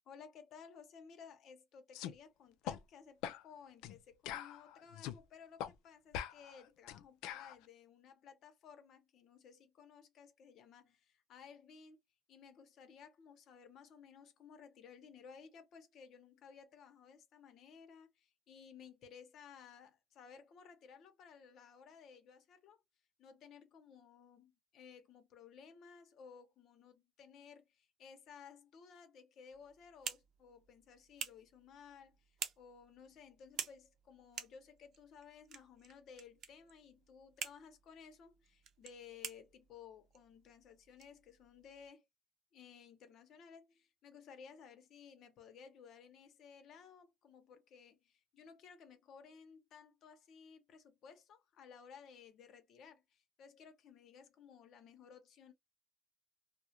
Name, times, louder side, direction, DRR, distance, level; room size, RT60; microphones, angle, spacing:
voice 1, 0.1-12.0 12.3-22.8 23.2-42.0 42.5-55.5, left 6 dB, 60° left, 0.8 m, -57 dB
sound 1, 1.9-2.1 2.7-2.8 3.2-3.4 3.8-4.0 4.3-5.2 5.6-5.7 6.1-7.5, left 10 dB, 85° left, 0.3 m, -43 dB
sound 2, 29.5-41.9, right 8 dB, 55° right, 0.6 m, -50 dB
2.3 x 2.0 x 2.8 m
cardioid pair, 115°, 0 cm